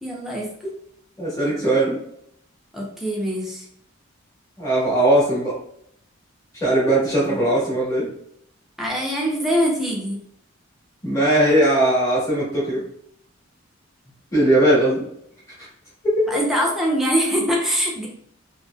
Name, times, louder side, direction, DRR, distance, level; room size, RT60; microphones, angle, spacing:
voice 1, 0.0-0.5 2.7-3.7 7.3-7.4 8.8-10.2 16.3-18.1, equal, ahead, -2 dB, 0.5 m, -23 dB
voice 2, 1.2-2.0 4.6-5.5 6.5-8.1 11.0-12.8 14.3-15.1 15.6-15.7 16.0-16.4, right 1 dB, 15° left, -7 dB, 1.2 m, -19 dB
2.9 x 2.7 x 2.2 m, 0.70 s
head